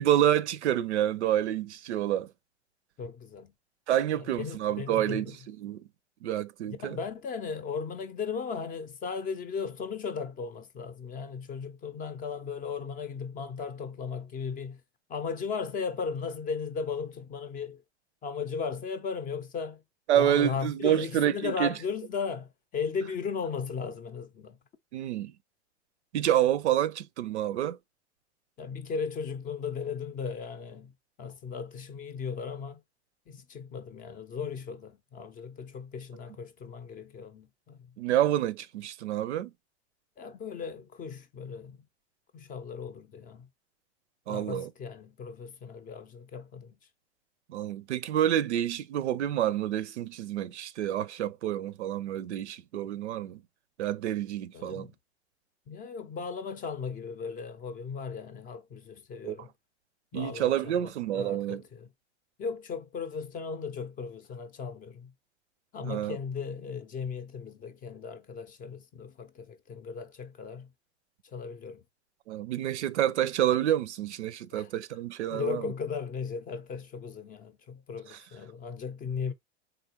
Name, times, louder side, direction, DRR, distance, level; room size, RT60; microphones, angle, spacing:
voice 1, 0.0-2.3 3.9-5.8 6.2-7.0 20.1-21.7 24.9-25.3 26.1-27.8 38.0-39.5 44.3-44.7 47.5-53.4 53.8-54.9 59.2-59.4 60.1-61.6 65.8-66.2 72.3-75.7 78.1-78.2, right 11 dB, 75° right, 0.5 m, -28 dB
voice 2, 3.0-3.5 4.1-5.4 6.7-14.8 15.1-17.8 18.2-19.8 20.1-24.6 28.6-30.9 31.2-32.8 33.3-37.9 40.2-41.8 42.3-43.5 44.3-46.8 54.5-54.9 55.7-59.5 60.1-61.9 62.4-65.1 65.7-70.7 71.3-71.8 74.5-74.7 75.3-79.3, left 5 dB, 25° left, 0.5 m, -36 dB
3.8 x 3.0 x 2.7 m
hypercardioid pair, 90°, 34 cm